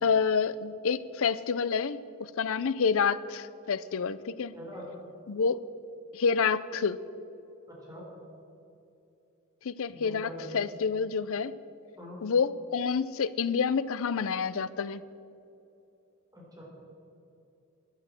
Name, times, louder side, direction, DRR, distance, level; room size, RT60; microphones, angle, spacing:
voice 1, 0.0-4.5 5.3-5.6 6.1-7.0 9.6-11.6 12.2-15.0, left 5 dB, 65° left, 16 dB, 0.5 m, -28 dB
voice 2, 4.5-4.9 7.7-8.1 9.9-10.6 12.0-12.2 16.3-16.6, equal, 15° right, -3 dB, 4.0 m, -44 dB
11.5 x 10.5 x 7.5 m, 2.8 s
head